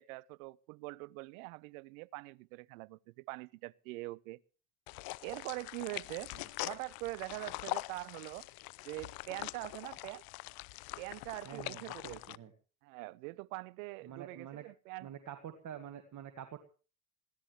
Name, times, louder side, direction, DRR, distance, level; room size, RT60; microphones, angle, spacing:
voice 1, 0.0-4.4 5.2-6.3 6.6-8.5 8.9-10.2 11.0-12.4 12.8-15.1, right 22 dB, 70° right, 0.7 m, -43 dB
sound 1, 4.9-12.4, left 24 dB, 55° left, 0.7 m, -43 dB
voice 2, 11.5-12.5 14.0-14.7 15.0-16.6, right 9 dB, 45° right, 1.9 m, -47 dB
21.0 x 16.0 x 3.3 m
hypercardioid pair, 65°, 43 cm